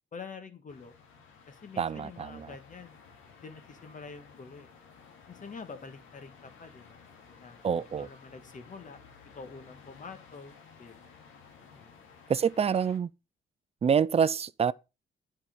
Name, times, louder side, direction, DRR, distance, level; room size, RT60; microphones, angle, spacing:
voice 1, 0.1-0.9 1.5-3.1 3.4-4.7 5.3-7.0 7.4-7.6 8.0-9.0 9.3-11.0 11.7-11.9, left 5 dB, 40° left, 1.8 m, -46 dB
sound 1, 0.7-13.0, left 5 dB, 90° left, 2.4 m, -55 dB
voice 2, 1.8-2.5 7.6-8.1 12.3-13.1 13.8-14.7, right 7 dB, 30° right, 0.5 m, -26 dB
9.8 x 5.8 x 5.3 m
cardioid pair, 90°, 20 cm